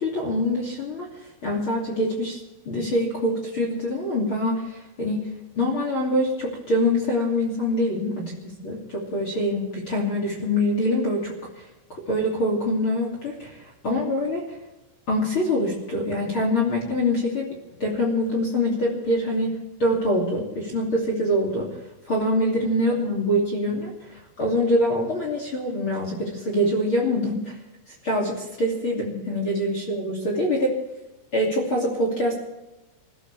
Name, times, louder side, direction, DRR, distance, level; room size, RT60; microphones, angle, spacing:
voice 1, 0.0-2.4 2.6-5.3 5.5-11.6 11.9-14.4 15.1-17.5 17.8-21.8 22.1-27.6 27.9-30.7 31.3-32.4, left 1 dB, 35° left, -1 dB, 2.7 m, -25 dB
26.5 x 14.5 x 3.4 m, 1.0 s
omnidirectional pair, 5.5 m